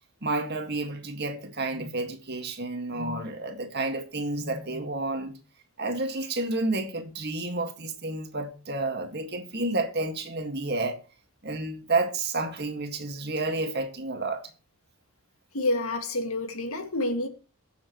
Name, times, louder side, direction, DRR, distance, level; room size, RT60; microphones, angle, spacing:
voice 1, 0.2-5.4 5.8-11.0 11.4-14.5, right 2 dB, 45° right, 1.9 m, -30 dB
voice 2, 15.5-17.3, left 2 dB, 75° left, 2.1 m, -28 dB
22.5 x 7.5 x 3.1 m
head